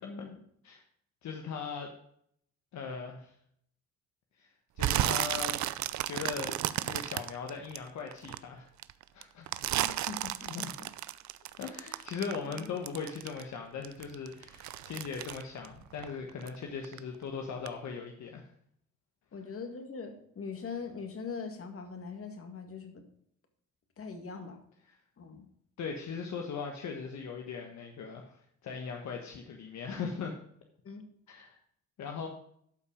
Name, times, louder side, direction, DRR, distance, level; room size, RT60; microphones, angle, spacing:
voice 1, 0.0-0.4 9.8-10.9 12.4-12.7 19.3-23.0 24.0-24.6 25.2-25.5 30.8-31.1, left 5 dB, 50° left, 6 dB, 2.1 m, -42 dB
voice 2, 1.2-1.9 2.7-3.3 4.4-4.5 4.8-5.6 6.0-6.5 6.8-8.7 9.1-9.5 10.5-10.7 11.6-18.5 25.8-30.4 31.3-31.6 32.0-32.3, left 5 dB, 65° left, 2 dB, 1.4 m, -39 dB
sound 1, 4.8-8.4 8.8-13.6 13.8-16.6 16.8-17.2 17.7-17.8, right 13 dB, 70° right, 0.6 m, -33 dB
12.0 x 5.6 x 5.1 m, 0.67 s
cardioid pair, 90°, 30 cm